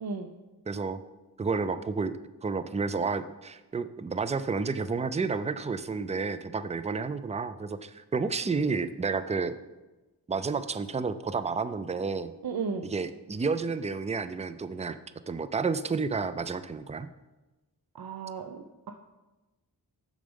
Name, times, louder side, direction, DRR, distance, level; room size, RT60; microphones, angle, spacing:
voice 1, 0.0-0.3 12.4-12.9 17.9-18.9, right 5 dB, 65° right, 5 dB, 0.6 m, -35 dB
voice 2, 0.7-1.0 1.4-2.1 2.4-9.6 10.3-12.3 12.9-15.0 15.3-17.1, right 4 dB, 15° right, 13 dB, 0.4 m, -30 dB
6.8 x 6.5 x 5.3 m, 1.1 s
wide cardioid pair, 70°, 40 cm